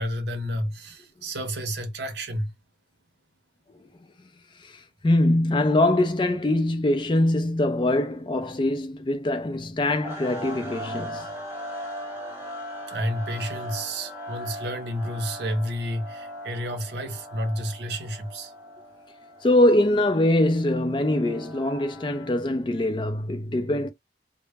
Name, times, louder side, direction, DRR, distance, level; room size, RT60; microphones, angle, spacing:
voice 1, 0.0-2.5 12.9-18.5, equal, 70° right, 0.7 m, -30 dB
voice 2, 4.6-11.3 19.4-23.9, left 1 dB, 25° left, 0.3 m, -23 dB
sound 1, 10.0-22.4, equal, 10° right, 0.8 m, -39 dB
2.1 x 2.0 x 3.3 m
head